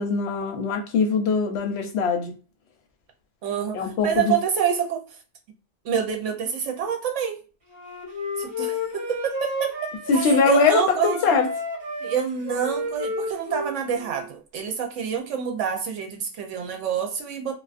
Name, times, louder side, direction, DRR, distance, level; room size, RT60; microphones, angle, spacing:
voice 1, 0.0-2.3 3.7-4.4 10.1-11.5, left 4 dB, 70° left, 0.8 m, -22 dB
voice 2, 3.4-5.0 5.8-7.4 8.4-9.7 10.1-11.3 12.0-17.5, right 7 dB, 80° right, 1.0 m, -27 dB
Wind instrument woodwind instrument, 7.7-10.7 11.0-14.3, left 1 dB, 55° right, 1.2 m, -31 dB
2.3 x 2.3 x 2.4 m
omnidirectional pair, 1.2 m